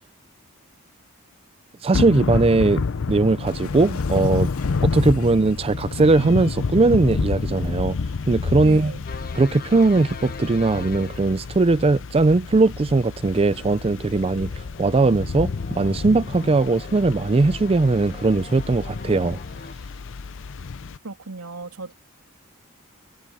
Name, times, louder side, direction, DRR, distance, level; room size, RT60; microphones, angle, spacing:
voice 1, 1.8-4.5 4.8-8.0 8.3-8.9 9.3-19.4, right 3 dB, 25° right, 0.4 m, -19 dB
Thunder / Rain, 1.9-21.0, left 4 dB, 60° left, 0.5 m, -29 dB
Cat, 3.4-6.7, left 5 dB, 80° left, 2.5 m, -44 dB
voice 2, 8.6-9.0 21.0-21.9, right 3 dB, 90° right, 2.5 m, -35 dB
sound 1, 9.1-11.7 13.5-19.7, left 3 dB, 45° left, 1.3 m, -41 dB
head